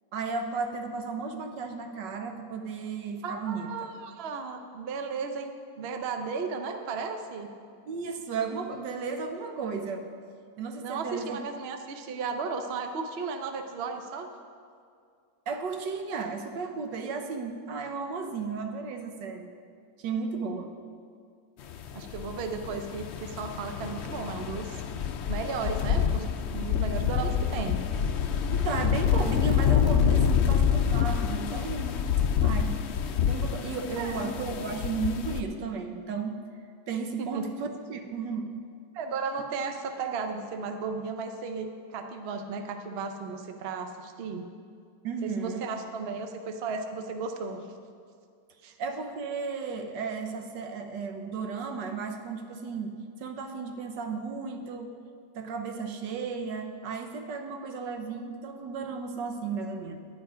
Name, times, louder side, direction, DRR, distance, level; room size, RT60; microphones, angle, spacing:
voice 1, 0.1-3.9 7.8-10.1 10.6-11.4 15.5-19.5 20.0-20.7 27.2-27.3 28.5-32.0 32.4-32.9 33.3-36.4 36.9-38.5 45.0-45.7 48.6-55.0 55.3-60.0, right 5 dB, 80° right, 6 dB, 1.5 m, -34 dB
voice 2, 3.2-7.5 10.8-14.3 21.9-24.8 25.3-26.3 26.5-27.8 34.0-34.3 37.2-37.6 38.9-44.4 45.2-47.6 48.6-48.7, right 5 dB, 50° right, 6 dB, 0.7 m, -35 dB
sound 1, 21.7-35.4, left 8 dB, 85° left, 0.6 m, -27 dB
10.5 x 10.0 x 5.0 m, 2.2 s
omnidirectional pair, 1.9 m